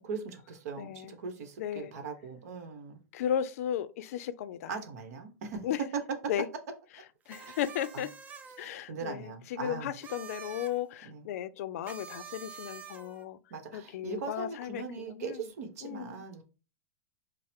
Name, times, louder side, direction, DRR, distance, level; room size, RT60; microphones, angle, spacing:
voice 1, 0.0-3.0 4.7-5.7 5.9-6.0 7.4-7.6 7.9-8.0 8.6-9.9 11.0-11.3 13.5-16.4, right 5 dB, 70° right, 1.0 m, -40 dB
voice 2, 0.8-1.2 1.6-1.9 3.1-4.7 5.6-5.8 6.3-6.5 7.3-8.1 8.6-13.4 13.7-15.5 15.8-16.2, left 10 dB, 65° left, 0.5 m, -35 dB
sound 1, 7.3-8.7 9.9-10.8 11.8-13.2, right 7 dB, 15° right, 0.4 m, -47 dB
5.4 x 2.0 x 3.5 m
supercardioid pair, 150°, 9 cm